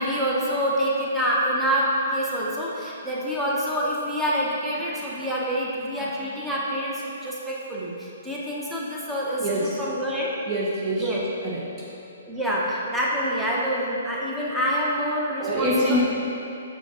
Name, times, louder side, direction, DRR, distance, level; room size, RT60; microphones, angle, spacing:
voice 1, 0.0-10.3 11.0-11.3 12.3-16.0, equal, 5° right, -6 dB, 1.0 m, -26 dB
voice 2, 9.4-9.8 10.5-11.1 11.4-11.7 15.4-16.0, equal, 25° right, -5 dB, 0.8 m, -25 dB
6.8 x 5.0 x 3.7 m, 2.7 s
figure-of-eight pair, 125°, 0 cm